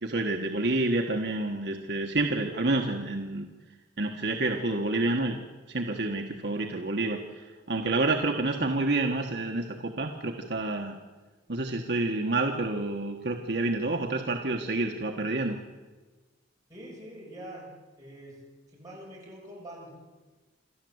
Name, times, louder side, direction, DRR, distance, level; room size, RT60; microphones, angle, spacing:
voice 1, 0.0-3.5 4.0-5.4 5.7-11.0 11.5-15.6, right 2 dB, 60° right, 2 dB, 1.3 m, -28 dB
voice 2, 16.7-17.7 18.0-18.3 18.7-19.9, right 1 dB, 20° right, -5 dB, 7.4 m, -44 dB
27.5 x 12.0 x 8.0 m, 1.3 s
head